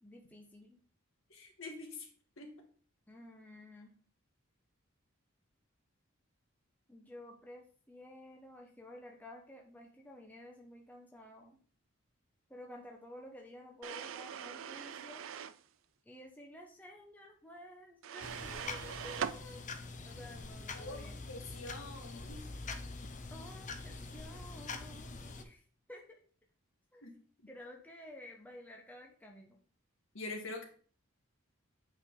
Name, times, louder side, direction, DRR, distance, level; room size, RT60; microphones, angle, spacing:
voice 1, 0.0-0.8 3.1-3.9 6.9-11.6 12.5-15.2 16.1-21.2 23.3-25.6 25.9-26.2 26.9-27.0 27.5-29.6, left 1 dB, 5° left, 0 dB, 0.9 m, -52 dB
voice 2, 1.3-2.1 2.4-2.5 20.7-22.4 27.0-27.1 27.4-27.5 30.1-30.7, left 2 dB, 65° left, 3 dB, 1.6 m, -45 dB
sound 1, 13.8-15.6 18.0-19.4, right 8 dB, 65° right, 0.4 m, -41 dB
sound 2, 18.2-25.4, left 3 dB, 35° left, 0.7 m, -45 dB
8.1 x 4.8 x 3.8 m, 0.43 s
head